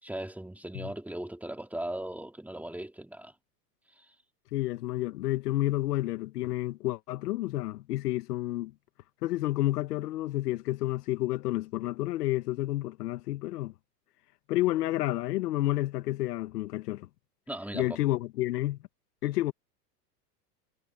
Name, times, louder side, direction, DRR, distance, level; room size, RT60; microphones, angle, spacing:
voice 1, 0.0-3.3 4.0-4.1 17.5-18.0, right 1 dB, 5° right, 4.1 m, -38 dB
voice 2, 4.5-8.7 9.2-13.7 14.5-17.1 17.7-18.8 19.2-19.5, left 16 dB, 70° left, 1.6 m, -30 dB
hypercardioid pair, 105°, 48 cm